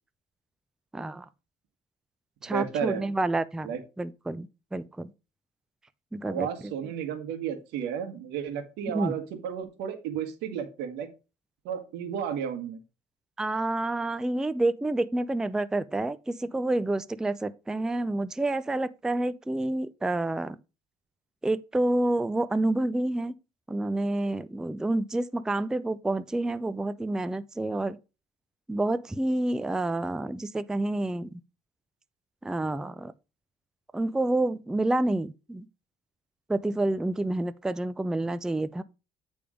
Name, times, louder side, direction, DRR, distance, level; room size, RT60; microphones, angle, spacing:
voice 1, 0.9-1.3 2.4-3.7 4.0-5.1 6.1-6.5 8.9-9.1 13.4-20.6 21.4-23.3 23.7-28.0 28.7-31.4 32.4-33.1 33.9-35.7 36.5-38.8, right 2 dB, 5° right, 0.3 m, -28 dB
voice 2, 2.5-3.1 3.6-3.8 6.2-11.1 11.6-12.8, right 8 dB, 85° right, 1.4 m, -33 dB
8.6 x 3.5 x 5.0 m
cardioid pair, 110°, 17 cm